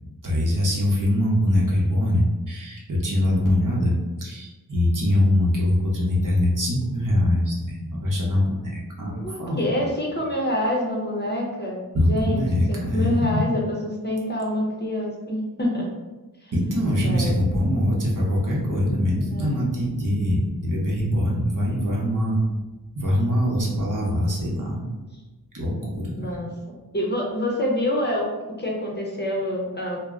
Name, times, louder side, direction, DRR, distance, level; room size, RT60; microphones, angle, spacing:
voice 1, 0.2-9.9 11.9-13.4 16.5-22.4 22.9-24.8 25.5-26.4, left 1 dB, 55° right, -4 dB, 0.8 m, -23 dB
voice 2, 9.1-15.9 16.4-16.5 17.0-17.4 19.3-19.7 26.2-26.5 26.9-28.3 28.6-30.0, left 1 dB, 25° left, -2 dB, 0.6 m, -26 dB
sound 1, 26.9-28.1, equal, 20° right, 0.5 m, -46 dB
2.2 x 2.1 x 3.5 m, 1.2 s
wide cardioid pair, 55°, 38 cm